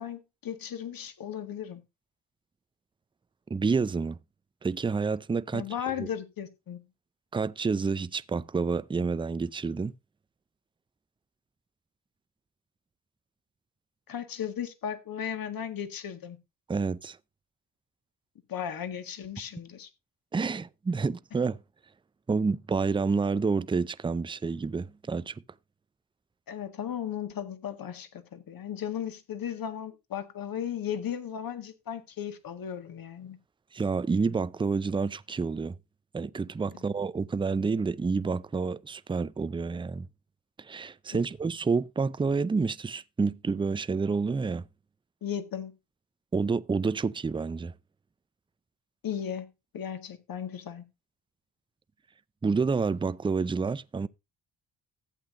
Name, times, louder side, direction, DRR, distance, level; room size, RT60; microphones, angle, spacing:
voice 1, 0.0-1.8 5.5-6.8 14.1-16.4 18.5-19.9 26.5-33.4 41.1-41.2 45.2-45.7 49.0-49.5 49.7-50.9, left 9 dB, 55° left, 1.8 m, -36 dB
voice 2, 3.5-4.2 4.6-5.6 6.0-6.1 7.3-9.9 16.7-17.2 20.3-21.6 22.3-25.3 33.7-35.8 36.1-40.1 40.6-44.6 46.3-47.7 52.4-54.1, right 4 dB, 15° right, 0.4 m, -29 dB
14.5 x 8.3 x 2.6 m
cardioid pair, 100°, 40 cm